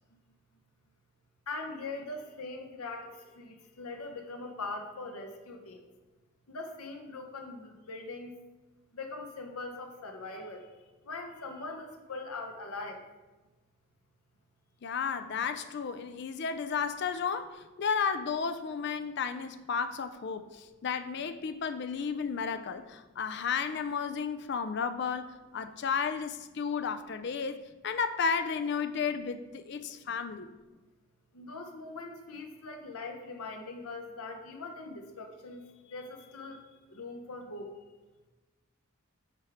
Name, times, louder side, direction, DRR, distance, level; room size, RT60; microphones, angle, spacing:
voice 1, 1.5-5.8 6.5-8.3 8.9-10.7 11.0-13.0 28.5-28.6 31.3-35.6 35.9-36.6 36.9-37.7, left 3 dB, 85° left, 4 dB, 0.9 m, -41 dB
voice 2, 14.8-30.5, left 6 dB, 50° left, 9 dB, 0.4 m, -33 dB
8.1 x 4.6 x 3.5 m, 1.2 s
head